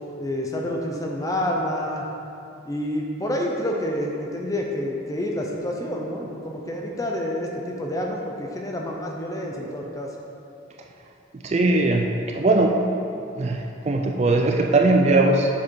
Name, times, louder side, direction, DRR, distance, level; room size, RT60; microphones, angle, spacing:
voice 1, 0.2-2.0 2.7-10.1, left 1 dB, 15° left, 0 dB, 0.6 m, -28 dB
voice 2, 11.4-12.8 13.3-15.5, right 2 dB, 35° right, 2 dB, 0.4 m, -20 dB
7.0 x 5.0 x 4.6 m, 2.8 s
head